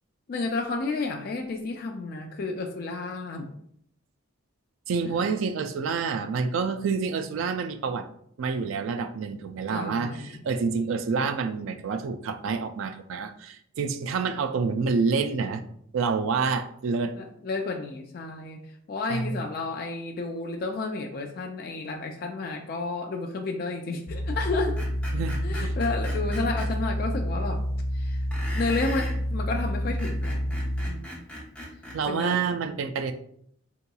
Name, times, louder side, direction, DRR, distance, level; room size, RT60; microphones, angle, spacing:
voice 1, 0.3-3.5 9.7-10.4 17.1-18.6 18.9-24.7 25.4-27.6 27.9-28.2 28.5-30.4 30.9-31.2 32.1-32.4, left 3 dB, 45° left, 3 dB, 0.3 m, -31 dB
voice 2, 4.9-8.1 8.4-15.6 15.9-17.2 19.1-19.4 25.1-25.7 31.9-33.1, right 5 dB, 75° right, 9 dB, 0.3 m, -28 dB
sound 1, 24.1-30.9, equal, 90° left, 0.7 m, -29 dB
Screech, 24.8-26.7 28.3-29.2 29.8-32.0, left 1 dB, 5° left, 0.7 m, -39 dB
3.7 x 2.9 x 2.2 m, 0.68 s
head